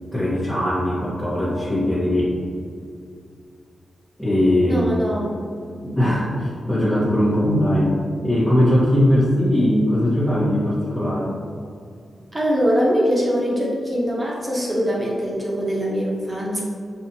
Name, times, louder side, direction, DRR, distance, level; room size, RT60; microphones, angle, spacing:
voice 1, 0.1-2.3 4.2-4.9 5.8-7.9 8.2-11.3, left 1 dB, 5° left, -10 dB, 1.2 m, -20 dB
voice 2, 4.6-5.3 12.3-16.6, equal, 30° right, -4 dB, 1.2 m, -22 dB
5.6 x 2.4 x 2.9 m, 2.2 s
cardioid pair, 60°, 0 cm